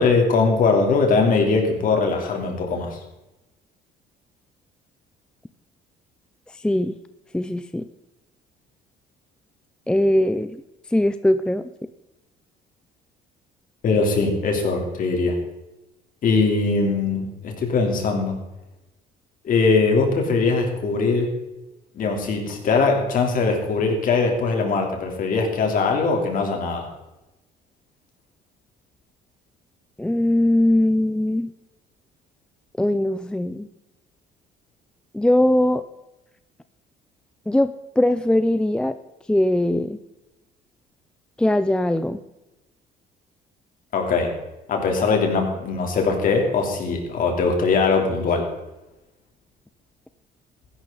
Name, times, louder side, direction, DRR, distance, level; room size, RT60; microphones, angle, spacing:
voice 1, 0.0-3.0 13.8-15.4 16.2-18.3 19.4-21.3 21.9-26.9 43.9-44.3 44.7-48.5, left 4 dB, 55° left, 2 dB, 3.4 m, -21 dB
voice 2, 6.6-7.0 7.3-7.9 9.9-10.6 10.9-11.7 30.0-31.5 32.8-33.7 35.1-35.8 37.5-37.7 38.0-38.9 39.3-40.0 41.4-42.2, left 1 dB, 5° left, 11 dB, 0.5 m, -20 dB
15.0 x 11.5 x 3.9 m, 0.99 s
cardioid pair, 110°, 17 cm